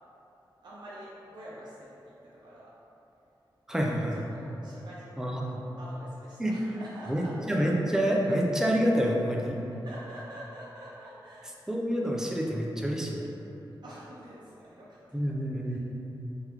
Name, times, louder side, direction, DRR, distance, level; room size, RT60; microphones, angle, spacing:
voice 1, 0.6-2.7 4.1-7.3 9.8-11.5 13.8-15.2 15.7-15.8, right 1 dB, 60° right, -7 dB, 0.6 m, -46 dB
voice 2, 3.7-4.2 5.2-5.6 6.4-6.6 7.1-9.6 11.7-13.2 15.1-15.8, equal, 5° right, -2 dB, 0.4 m, -27 dB
3.5 x 3.4 x 3.0 m, 2.9 s
wide cardioid pair, 120°, 8 cm